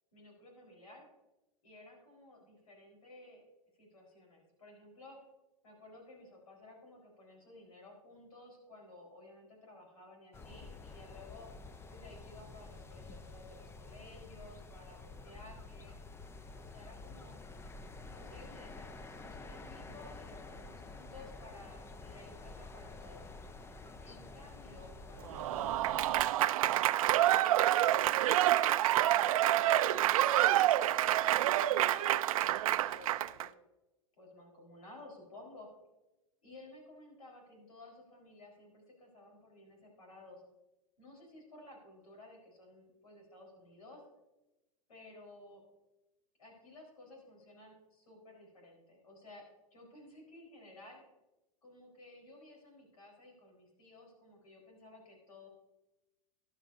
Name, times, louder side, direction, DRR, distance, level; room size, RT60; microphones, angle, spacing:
voice 1, 0.1-1.1 1.6-3.4 3.8-5.2 5.6-11.5 11.9-16.0 16.5-17.4 18.1-23.3 24.0-25.7 26.8-27.5 27.9-33.1 33.4-33.5 34.2-35.7 36.4-40.4 41.0-44.0 44.9-45.6 46.4-49.4 49.7-51.0 51.6-55.5, left 2 dB, 85° left, 0 dB, 4.5 m, -55 dB
sound 1, 10.3-26.3, left 3 dB, 15° left, 0.6 m, -49 dB
Applause / Crowd, 25.3-33.5, right 13 dB, 75° right, 0.4 m, -28 dB
13.5 x 11.0 x 2.7 m, 1.0 s
hypercardioid pair, 105°, 18 cm